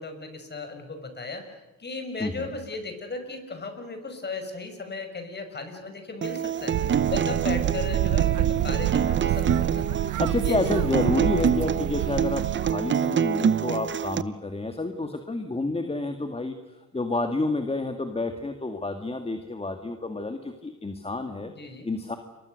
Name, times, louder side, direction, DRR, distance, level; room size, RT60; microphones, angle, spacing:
voice 1, 0.0-1.4 1.8-6.7 7.1-9.8 10.4-10.7 21.4-21.9, left 3 dB, 35° left, 7 dB, 6.1 m, -36 dB
Acoustic guitar, 6.2-14.2, right 8 dB, 40° right, 0.9 m, -26 dB
sound 1, 6.7-12.7, right 13 dB, 85° right, 1.0 m, -27 dB
voice 2, 10.2-16.6 16.9-21.5 21.8-22.2, left 2 dB, 20° left, 6 dB, 2.1 m, -29 dB
29.5 x 23.5 x 6.6 m, 1.1 s
cardioid pair, 90°, 30 cm